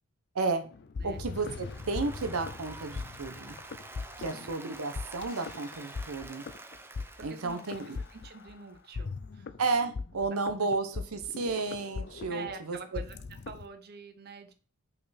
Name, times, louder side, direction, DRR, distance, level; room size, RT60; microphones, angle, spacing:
sound 1, 0.6-13.7, left 4 dB, 50° left, 0.5 m, -40 dB
voice 1, 1.0-3.6 4.2-6.4 7.2-8.0 9.6-12.8, right 3 dB, 75° right, 7 dB, 0.7 m, -32 dB
Applause, 1.4-8.6, right 2 dB, 10° right, 0.6 m, -48 dB
voice 2, 4.2-4.7 7.2-7.6 7.9-9.5 9.8-9.9 10.2-10.8 12.3-13.2 13.5-14.5, right 4 dB, 45° right, 8 dB, 0.8 m, -46 dB
5.4 x 4.3 x 4.1 m, 0.42 s
head